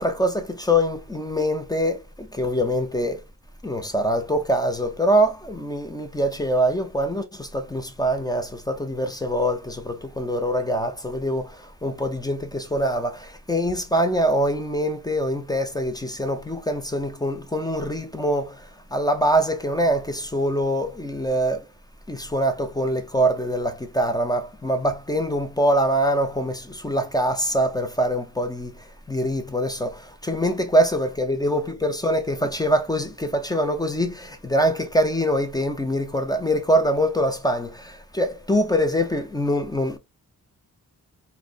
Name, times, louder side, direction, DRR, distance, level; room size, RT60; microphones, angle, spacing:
voice 1, 0.0-3.2 3.6-21.7 22.1-40.0, equal, 10° left, 0.5 m, -24 dB
3.6 x 2.2 x 2.4 m
wide cardioid pair, 130°, 35 cm